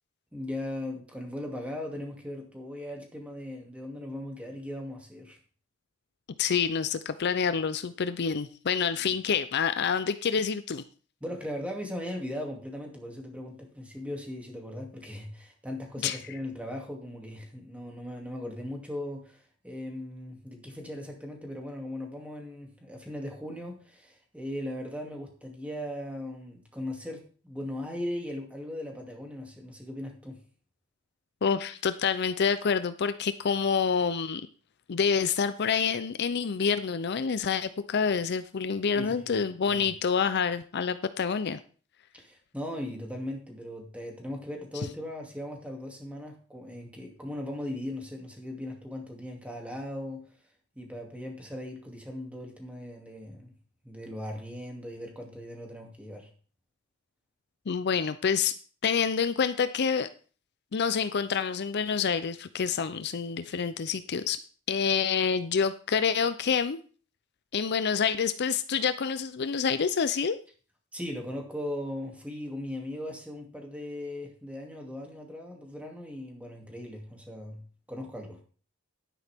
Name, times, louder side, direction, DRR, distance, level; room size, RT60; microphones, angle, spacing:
voice 1, 0.3-5.4 9.0-9.2 11.2-30.4 38.9-39.3 39.7-39.8 42.1-50.2 50.8-53.5 53.8-56.3 70.9-77.6 77.9-78.4, left 1 dB, 5° right, 1 dB, 2.5 m, -38 dB
voice 2, 6.4-10.8 16.0-16.2 31.4-34.4 34.9-41.6 57.7-58.5 58.8-60.1 60.7-64.4 64.7-66.8 67.5-70.4, left 6 dB, 55° left, 12 dB, 0.5 m, -27 dB
11.0 x 9.9 x 3.5 m, 0.40 s
head